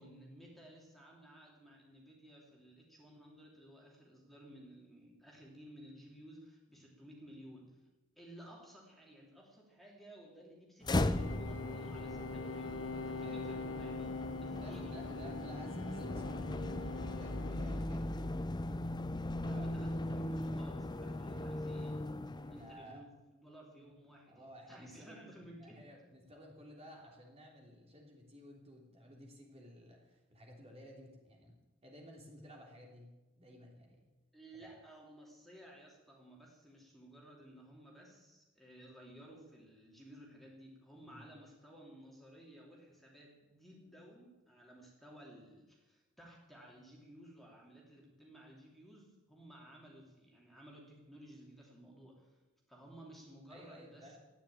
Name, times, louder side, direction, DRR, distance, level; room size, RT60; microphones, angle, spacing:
voice 1, 0.0-7.8 8.2-14.1 14.4-15.2 19.4-22.1 22.5-25.8 34.3-52.4 52.7-54.2, right 1 dB, ahead, -2 dB, 3.1 m, -56 dB
sound 1, 10.8-22.8, left 1 dB, 20° left, 0.6 m, -38 dB
sound 2, 11.1-17.9, left 3 dB, 75° left, 1.3 m, -44 dB
voice 2, 13.2-13.5 14.5-18.3 19.3-19.7 21.2-21.8 22.4-23.1 24.3-31.6 31.8-33.1 33.4-34.0 34.6-34.8 41.1-41.3 53.5-54.2, equal, 30° right, 0 dB, 3.3 m, -55 dB
14.5 x 10.0 x 8.9 m, 1.1 s
head